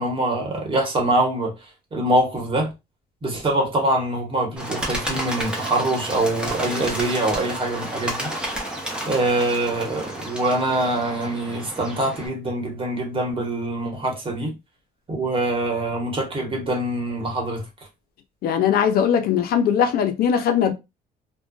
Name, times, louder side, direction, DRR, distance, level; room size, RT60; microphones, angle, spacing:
voice 1, 0.0-1.5 1.9-2.7 3.2-8.3 9.1-14.5 15.1-17.6, right 1 dB, 30° right, 1.1 m, -24 dB
Bird, 4.6-12.3, right 1 dB, 5° right, 0.8 m, -31 dB
voice 2, 18.4-20.7, left 8 dB, 65° left, 0.5 m, -20 dB
2.4 x 2.2 x 2.3 m
cardioid pair, 110°, 17 cm